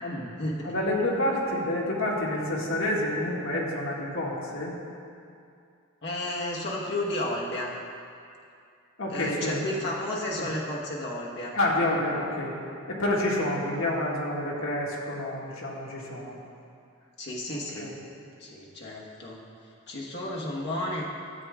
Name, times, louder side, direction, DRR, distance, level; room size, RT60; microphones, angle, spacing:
voice 1, 0.1-0.8 6.0-7.7 9.1-11.6 17.2-17.9 18.4-19.4 19.9-21.0, left 1 dB, 50° left, -4 dB, 1.3 m, -32 dB
voice 2, 0.6-4.8 9.0-9.6 10.3-10.5 11.5-12.6 12.9-16.4 17.5-17.9, left 1 dB, 75° left, -4 dB, 1.8 m, -28 dB
13.5 x 7.6 x 3.6 m, 2.5 s
head